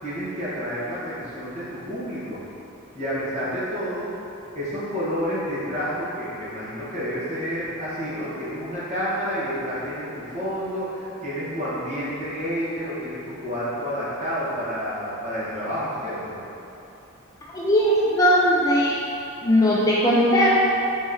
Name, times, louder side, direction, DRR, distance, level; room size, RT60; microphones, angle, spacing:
voice 1, 0.0-2.4 2.9-4.1 4.5-16.4, equal, 35° right, -11 dB, 1.3 m, -29 dB
voice 2, 17.5-19.0 19.4-20.5, equal, 15° left, -6 dB, 0.3 m, -19 dB
3.9 x 3.1 x 3.8 m, 2.8 s
head